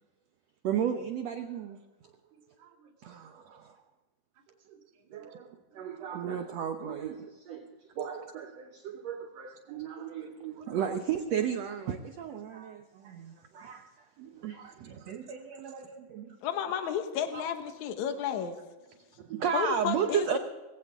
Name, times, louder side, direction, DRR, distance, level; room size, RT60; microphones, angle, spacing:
voice 1, 0.6-1.8 3.0-3.8 5.1-5.5 5.7-7.7 8.0-13.9 14.2-16.4 17.3-17.4 19.2-20.4, right 8 dB, 80° right, 1.5 m, -34 dB
voice 2, 2.3-2.9 4.7-5.3 5.7-5.9 10.0-10.1 10.5-10.7 15.2-15.3 15.6-15.7 18.9-19.4, right 7 dB, 55° right, 3.5 m, -59 dB
voice 3, 16.4-18.6 19.5-20.4, left 8 dB, 60° left, 2.4 m, -32 dB
20.0 x 16.5 x 3.7 m
omnidirectional pair, 4.4 m